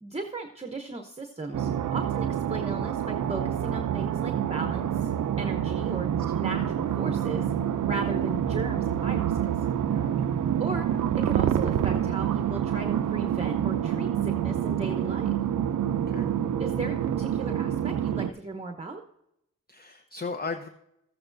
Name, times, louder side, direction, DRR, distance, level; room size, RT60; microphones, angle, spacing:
voice 1, 0.0-5.1 5.4-6.1 6.4-7.5 7.8-9.5 10.6-10.9 11.1-15.3 16.6-19.0, right 3 dB, 20° right, 4 dB, 0.9 m, -36 dB
sound 1, 1.5-18.3, right 9 dB, 70° right, 0.5 m, -27 dB
voice 2, 9.9-10.3 16.1-16.3 19.7-20.7, left 4 dB, 30° left, 7 dB, 0.7 m, -36 dB
13.5 x 8.6 x 2.6 m, 0.81 s
cardioid pair, 55°, 32 cm